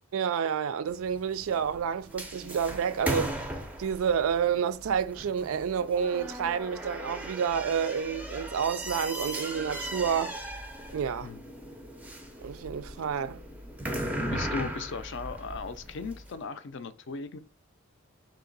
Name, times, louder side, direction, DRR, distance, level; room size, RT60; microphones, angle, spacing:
voice 1, 0.1-3.4 3.8-10.3 10.9-11.3 12.4-13.4, right 7 dB, 70° right, 0.3 m, -29 dB
sound 1, 0.9-16.3, right 1 dB, 5° right, 0.4 m, -37 dB
voice 2, 14.2-17.4, left 4 dB, 55° left, 0.4 m, -37 dB
3.7 x 2.9 x 3.9 m
head